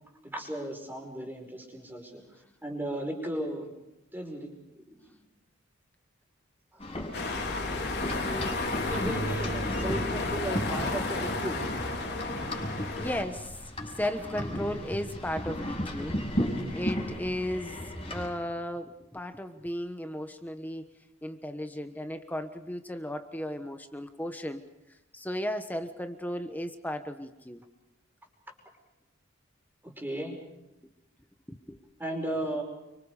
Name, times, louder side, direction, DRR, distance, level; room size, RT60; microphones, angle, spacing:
voice 1, 0.2-2.2 2.6-3.7 4.1-5.2 6.7-6.8 8.9-11.6 29.8-30.4 32.0-32.6, right 1 dB, 10° right, 2 dB, 5.3 m, -35 dB
sound 1, 6.8-18.3, equal, 25° left, 5.9 m, -35 dB
sound 2, 7.1-13.2, left 2 dB, 50° left, 4.9 m, -32 dB
voice 2, 13.0-13.6 13.8-16.1 16.7-17.8 18.1-20.9 21.2-24.6 25.1-27.6 31.7-31.8, left 1 dB, 10° left, 7 dB, 1.2 m, -35 dB
30.0 x 25.0 x 5.1 m, 0.96 s
head